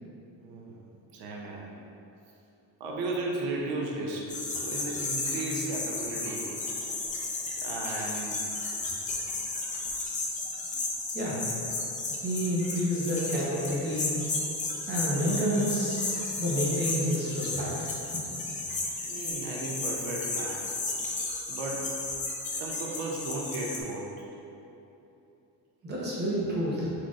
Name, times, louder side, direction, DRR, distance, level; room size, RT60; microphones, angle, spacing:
voice 1, 0.4-0.8 1.1-1.7 2.8-6.7 7.6-8.4 19.1-20.6 21.5-21.9 22.6-24.1, right 2 dB, 85° right, -1 dB, 0.7 m, -35 dB
sound 1, 4.3-23.8, left 3 dB, 20° left, 0.5 m, -33 dB
voice 2, 12.2-14.3 14.9-17.9 25.8-26.9, equal, 30° right, -5 dB, 0.9 m, -29 dB
4.6 x 4.2 x 2.4 m, 2.9 s
cardioid pair, 150°, 35 cm